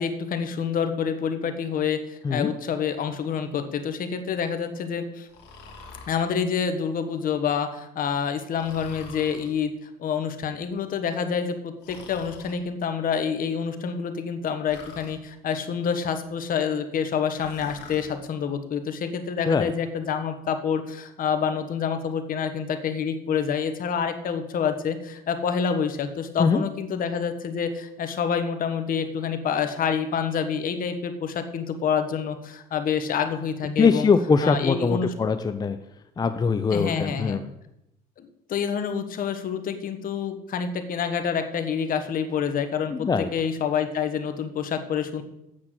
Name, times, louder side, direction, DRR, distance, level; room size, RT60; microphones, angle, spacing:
voice 1, 0.0-5.3 6.1-9.7 10.0-34.1 34.4-35.1 36.7-37.4 38.2-45.2, left 7 dB, 55° left, 8 dB, 1.4 m, -27 dB
Breathing, 5.3-6.2 8.6-9.5 11.8-12.6 14.7-15.2 17.3-18.1, left 4 dB, 85° left, 2.2 m, -45 dB
voice 2, 33.6-35.8 36.2-37.5 42.9-43.3, left 5 dB, 25° left, 9 dB, 0.6 m, -22 dB
8.7 x 6.0 x 7.8 m, 0.84 s
cardioid pair, 110°, 17 cm